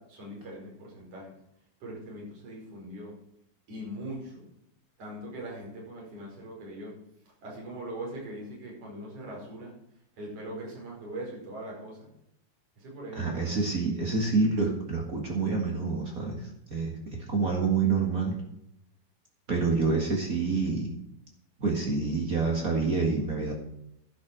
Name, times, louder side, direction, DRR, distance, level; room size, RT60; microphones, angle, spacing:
voice 1, 0.1-1.3 1.8-3.1 3.7-4.5 5.0-6.9 7.4-9.7 10.2-12.1 12.8-13.6, right 1 dB, 35° right, -3 dB, 5.6 m, -41 dB
voice 2, 13.1-16.4 16.7-18.4 19.5-20.9 21.6-23.5, right 4 dB, 55° right, 0 dB, 0.9 m, -27 dB
11.5 x 8.3 x 6.2 m, 0.77 s
omnidirectional pair, 5.0 m